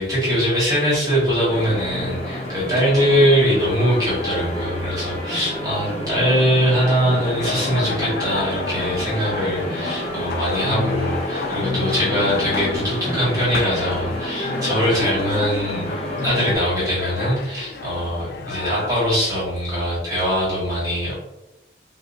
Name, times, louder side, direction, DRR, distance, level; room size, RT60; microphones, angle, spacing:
voice 1, 0.0-15.9 16.2-21.1, equal, 20° right, -9 dB, 1.5 m, -22 dB
sound 1, 1.5-16.5, left 1 dB, 35° left, 0.7 m, -29 dB
sound 2, 7.1-18.9, left 4 dB, 60° left, 0.3 m, -32 dB
4.6 x 2.1 x 2.6 m, 0.94 s
head